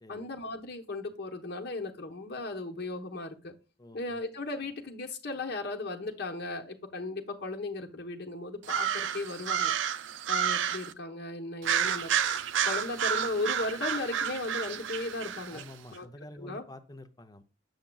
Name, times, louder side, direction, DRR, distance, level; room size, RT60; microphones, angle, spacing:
voice 1, 0.1-3.5 3.9-9.7 10.3-12.1 12.6-15.6 15.9-16.1 16.4-16.6, left 2 dB, 60° left, 0.9 m, -36 dB
voice 2, 3.8-4.2 15.5-17.4, left 1 dB, 20° left, 0.5 m, -48 dB
sound 1, 8.6-10.9 11.6-15.7, right 8 dB, 85° right, 0.4 m, -30 dB
7.1 x 6.4 x 2.3 m
head